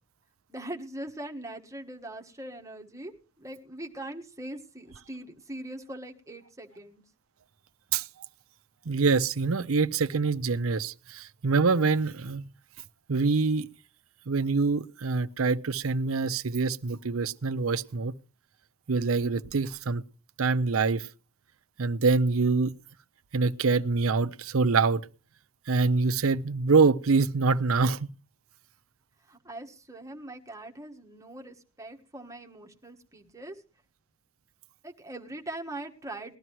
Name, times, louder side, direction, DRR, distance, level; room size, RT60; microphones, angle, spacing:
voice 1, 0.5-7.0 29.3-33.6 34.8-36.4, right 1 dB, 15° right, 1.4 m, -41 dB
voice 2, 8.9-12.4 13.1-13.7 14.3-18.1 18.9-20.0 20.4-21.1 21.8-22.7 23.3-25.0 25.7-28.1, right 4 dB, 70° right, 0.6 m, -25 dB
20.0 x 12.5 x 3.1 m
head